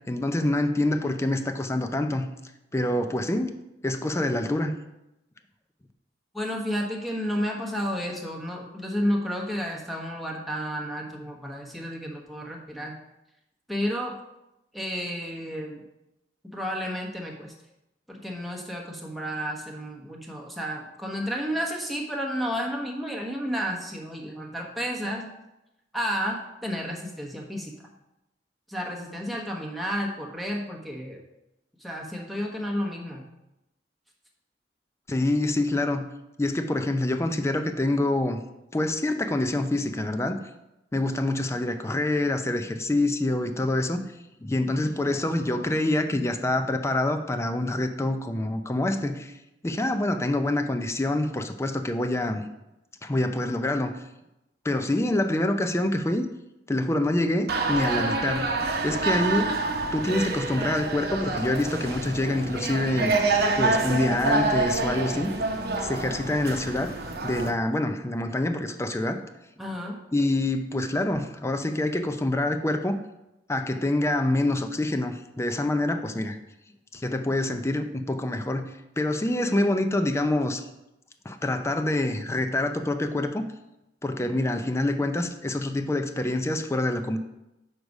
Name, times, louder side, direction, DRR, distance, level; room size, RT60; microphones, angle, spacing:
voice 1, 0.1-2.2 2.7-3.5 3.8-4.7 35.1-36.0 36.4-38.4 38.7-40.4 40.9-44.0 44.4-49.3 49.6-52.4 53.0-53.9 54.6-56.2 56.7-58.5 58.8-59.5 59.9-63.1 63.5-65.3 65.8-67.0 67.2-69.2 70.1-73.0 73.5-76.4 76.9-78.6 79.0-80.6 81.2-83.4 84.0-87.2, left 1 dB, 15° left, 8 dB, 0.5 m, -26 dB
voice 2, 6.3-12.9 13.7-14.2 14.7-15.8 16.4-17.5 18.1-25.4 25.9-27.8 28.7-31.2 31.8-33.3 69.6-70.0, equal, ahead, -1 dB, 1.1 m, -31 dB
sound 1, 57.5-67.5, right 3 dB, 60° right, 0.8 m, -27 dB
6.6 x 4.7 x 5.3 m, 0.92 s
head